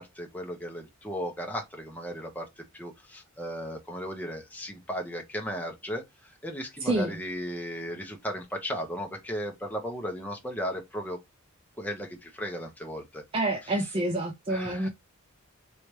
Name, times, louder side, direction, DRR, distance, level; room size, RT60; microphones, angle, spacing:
voice 1, 0.0-11.2 11.8-13.2 13.8-13.9 14.5-14.9, equal, 5° left, 0.8 m, -36 dB
voice 2, 6.8-7.2 13.3-14.9, right 1 dB, 25° right, 0.5 m, -28 dB
3.3 x 3.0 x 3.1 m
head